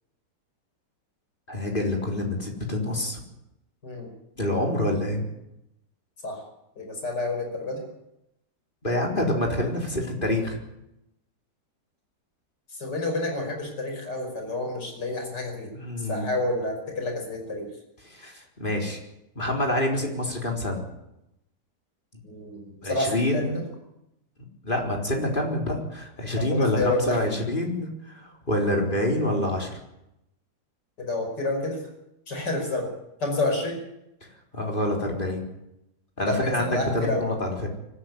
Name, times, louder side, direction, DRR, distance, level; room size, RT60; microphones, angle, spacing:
voice 1, 1.5-3.2 4.4-5.2 8.8-10.6 15.8-16.3 18.1-19.0 19.4-20.8 22.8-23.6 24.6-29.8 34.2-34.3 34.5-35.4 36.2-37.7, left 1 dB, 30° left, 1 dB, 4.3 m, -27 dB
voice 2, 6.8-7.8 12.7-15.7 16.0-17.7 22.2-23.6 26.4-27.2 31.0-31.8 32.3-32.9 33.2-33.8 36.2-37.3, left 2 dB, 80° left, 3 dB, 6.0 m, -29 dB
24.0 x 13.5 x 9.7 m, 0.86 s
omnidirectional pair, 1.8 m